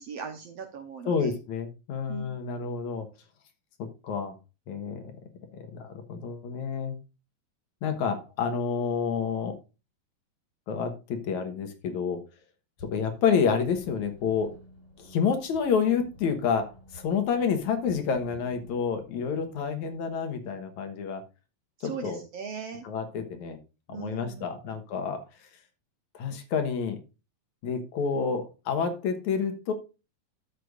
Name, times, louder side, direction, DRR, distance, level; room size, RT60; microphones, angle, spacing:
voice 1, 0.0-1.4 2.1-2.4 21.8-22.9 23.9-24.7, right 6 dB, 65° right, 6 dB, 1.7 m, -39 dB
voice 2, 1.1-3.1 4.0-4.3 4.7-5.0 5.5-7.0 7.8-9.5 10.7-12.2 12.8-14.5 15.0-21.2 21.8-22.2 22.8-23.6 23.9-25.2 26.1-27.0 27.6-29.7, left 6 dB, 65° left, 7 dB, 2.5 m, -29 dB
sound 1, 12.8-20.1, left 1 dB, 50° left, 6.8 m, -52 dB
12.0 x 8.1 x 2.5 m, 0.30 s
omnidirectional pair, 3.8 m